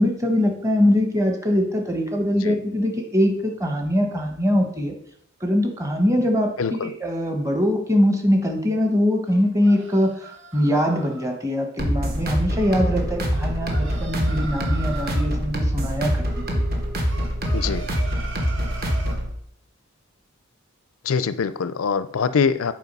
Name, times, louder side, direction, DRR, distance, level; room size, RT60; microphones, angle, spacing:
voice 1, 0.0-4.9 5.4-16.4, left 1 dB, 15° right, 3 dB, 1.0 m, -22 dB
voice 2, 6.6-6.9 17.5-17.9 21.1-22.7, left 6 dB, 90° left, 14 dB, 0.5 m, -23 dB
sound 1, 9.3-11.3 13.3-15.3 17.1-19.2, right 4 dB, 65° right, 1.4 m, -39 dB
sound 2, 11.8-19.3, equal, 45° right, 1.4 m, -24 dB
8.4 x 4.6 x 5.4 m, 0.69 s
head